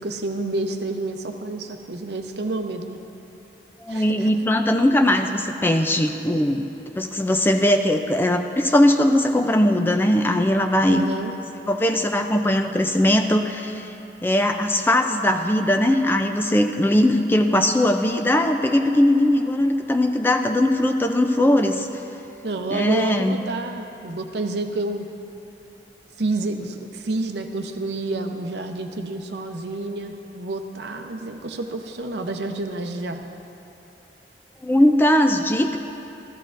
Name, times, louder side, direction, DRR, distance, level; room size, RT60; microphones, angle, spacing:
voice 1, 0.0-3.0 3.9-4.3 10.9-11.3 22.4-25.1 26.2-33.2, right 2 dB, 70° right, 5 dB, 0.7 m, -29 dB
voice 2, 3.8-6.6 7.0-11.1 11.7-13.9 14.2-21.9 22.7-23.4 34.6-35.8, left 1 dB, 10° left, 5 dB, 0.4 m, -20 dB
14.0 x 13.0 x 2.5 m, 2.9 s
head